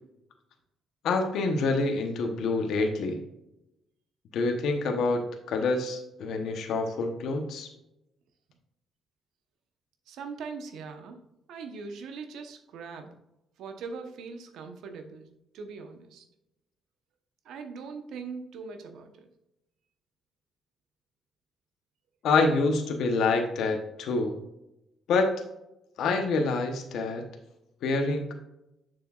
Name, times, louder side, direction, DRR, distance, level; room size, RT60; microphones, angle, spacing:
voice 1, 1.0-3.2 4.3-7.7 22.2-24.4 25.1-25.3 26.0-27.2 27.8-28.3, left 3 dB, 75° left, 4 dB, 1.0 m, -27 dB
voice 2, 10.1-11.2 11.5-13.1 13.6-15.3 15.5-16.2 17.4-19.3, right 5 dB, 80° right, 6 dB, 1.0 m, -41 dB
6.9 x 6.8 x 2.4 m, 0.89 s
cardioid pair, 90°, 0 cm